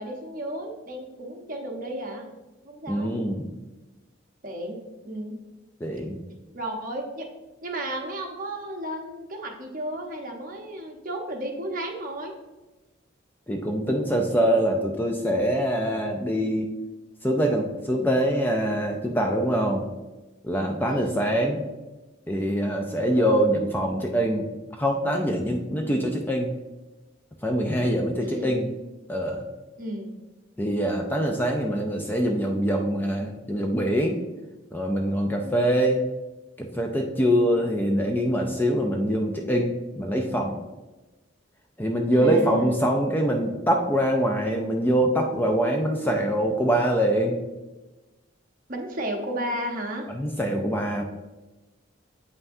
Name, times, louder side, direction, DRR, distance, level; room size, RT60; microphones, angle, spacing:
voice 1, 0.0-2.3 2.6-3.2 4.4-5.4 6.5-7.3 7.6-12.3 14.5-14.7 20.9-21.2 28.2-28.5 29.8-30.2 35.4-35.8 42.1-42.9 48.7-50.1, right 1 dB, 40° right, 1 dB, 0.9 m, -33 dB
voice 2, 2.9-3.5 5.8-6.2 13.5-16.7 17.2-19.8 20.4-21.6 22.3-24.5 24.8-26.5 27.4-28.7 29.1-29.4 30.6-34.2 34.7-36.0 36.6-40.5 41.8-47.4 50.1-51.0, equal, 10° left, 2 dB, 0.4 m, -24 dB
8.1 x 5.6 x 2.7 m, 1.1 s
head